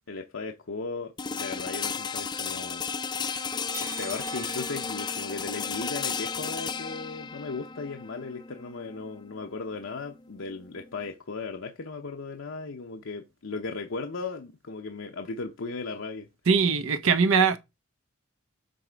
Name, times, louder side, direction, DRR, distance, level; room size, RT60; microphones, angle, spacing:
voice 1, 0.1-2.8 4.0-16.3, left 4 dB, 65° left, 0.7 m, -36 dB
sound 1, 1.2-11.1, left 5 dB, 20° left, 0.4 m, -34 dB
sound 2, 3.7-5.9, right 5 dB, 15° right, 0.9 m, -44 dB
voice 2, 16.5-17.6, right 5 dB, 70° right, 0.7 m, -22 dB
7.7 x 3.2 x 5.0 m
head